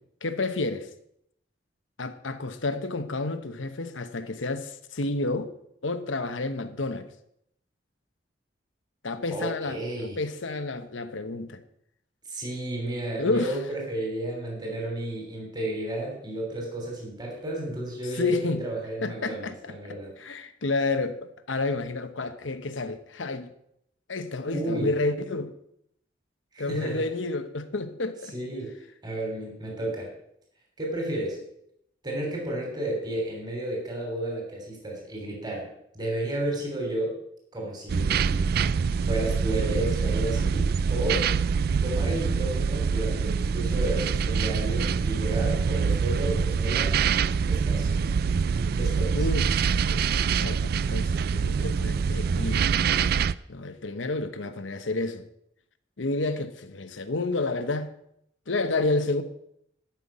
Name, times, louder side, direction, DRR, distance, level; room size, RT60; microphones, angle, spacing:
voice 1, 0.2-0.9 2.0-5.5 5.8-7.1 9.0-9.8 10.2-11.6 13.2-13.6 18.1-18.6 19.0-23.5 24.1-25.5 26.6-28.3 49.1-52.6 53.5-55.2 56.0-57.9 58.5-59.2, left 3 dB, 90° left, 1.0 m, -30 dB
voice 2, 9.3-10.2 12.3-20.1 24.5-24.9 26.5-27.0 28.3-28.7 29.0-30.1 30.8-31.4 32.0-35.7 35.9-37.1 37.5-38.5 39.0-41.3 41.8-46.9 47.4-47.9 48.7-49.3, right 1 dB, 25° right, 3.3 m, -32 dB
sound 1, 37.9-53.3, right 6 dB, 55° right, 0.4 m, -25 dB
12.0 x 5.9 x 8.7 m
head